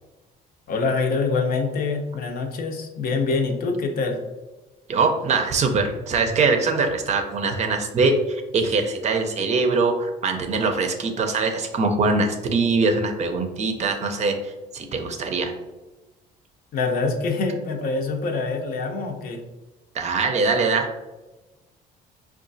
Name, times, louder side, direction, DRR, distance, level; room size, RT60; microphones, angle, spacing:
voice 1, 0.7-4.2 16.7-19.4, left 4 dB, 60° left, 4 dB, 0.6 m, -25 dB
voice 2, 4.9-15.5 19.9-21.1, right 4 dB, 45° right, 5 dB, 0.5 m, -22 dB
4.7 x 2.4 x 2.6 m, 1.1 s
cardioid pair, 110°, 17 cm